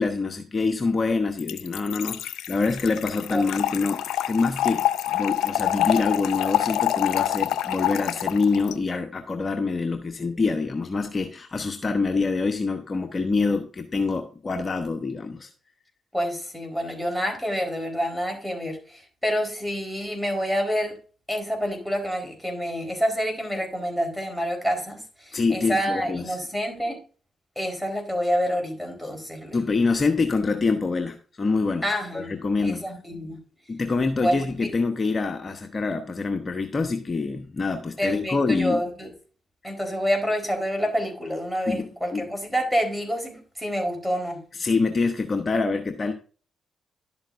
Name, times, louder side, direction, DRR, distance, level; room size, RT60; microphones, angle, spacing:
voice 1, 0.0-15.5 25.3-26.4 29.5-32.9 33.7-38.8 39.6-39.7 41.7-42.2 44.5-46.1, left 4 dB, 40° left, 6 dB, 1.0 m, -26 dB
Trickle dribble / Fill (with liquid), 1.4-8.7, left 12 dB, 80° left, 0.5 m, -26 dB
voice 2, 16.1-21.0 21.3-27.0 27.6-29.6 31.8-32.3 32.6-33.4 34.1-34.7 38.0-39.1 39.6-44.4, equal, ahead, 2 dB, 4.1 m, -28 dB
11.5 x 7.2 x 2.6 m, 0.38 s
supercardioid pair, 50°, 0 cm